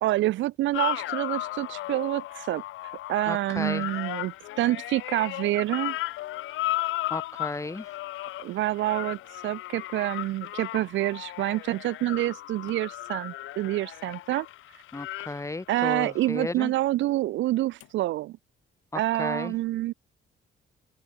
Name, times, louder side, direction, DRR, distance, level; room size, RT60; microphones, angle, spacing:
voice 1, 0.0-2.6 3.1-6.0 8.4-14.5 15.7-18.4 18.9-19.9, right 16 dB, 70° right, 0.4 m, -27 dB
sound 1, 0.7-16.3 17.8-17.9, left 16 dB, 80° left, 0.6 m, -35 dB
voice 2, 3.3-3.9 7.1-7.9 14.9-16.7 18.9-19.5, left 2 dB, 15° left, 0.9 m, -34 dB
open air
cardioid pair, 90°, 20 cm